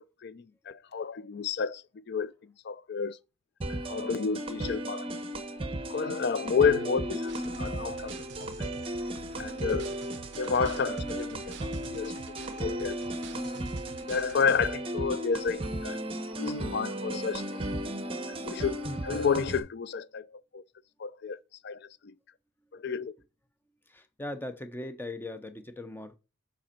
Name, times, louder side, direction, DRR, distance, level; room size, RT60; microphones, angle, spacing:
voice 1, 0.0-1.8 2.1-2.3 2.6-3.2 3.9-5.1 5.9-8.7 9.4-10.0 10.4-12.1 12.6-13.0 14.1-16.0 16.4-17.4 18.4-20.3 20.5-20.6 21.0-21.4 21.6-21.9 22.7-23.1, left 6 dB, 50° left, 0.4 m, -30 dB
sound 1, 3.6-19.6, right 1 dB, 25° right, 0.9 m, -35 dB
sound 2, 7.3-14.7, right 6 dB, 55° right, 0.5 m, -48 dB
voice 2, 23.9-26.2, left 1 dB, 10° left, 0.6 m, -39 dB
7.7 x 5.2 x 4.3 m
head